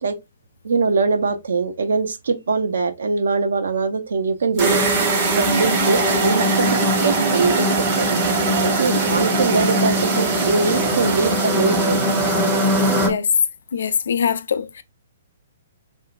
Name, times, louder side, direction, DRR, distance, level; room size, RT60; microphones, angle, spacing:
voice 1, 0.6-4.8 5.3-7.7 8.0-8.1 8.6-12.0, right 4 dB, 65° right, 0.6 m, -22 dB
sound 1, 4.6-13.1, left 1 dB, 5° right, 0.6 m, -22 dB
sound 2, 4.6-13.1, right 5 dB, 40° right, 1.1 m, -23 dB
voice 2, 13.7-14.8, left 7 dB, 60° left, 0.3 m, -23 dB
3.1 x 2.1 x 2.4 m
figure-of-eight pair, 120°, 0 cm